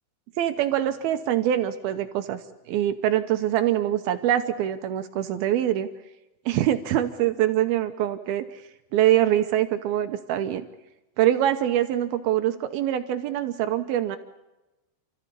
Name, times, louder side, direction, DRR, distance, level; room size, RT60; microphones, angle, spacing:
voice 1, 0.4-2.4 2.7-5.9 6.5-8.6 8.9-10.7 11.2-14.2, right 12 dB, 75° right, 9 dB, 2.3 m, -24 dB
28.5 x 14.5 x 8.4 m, 1.0 s
omnidirectional pair, 5.4 m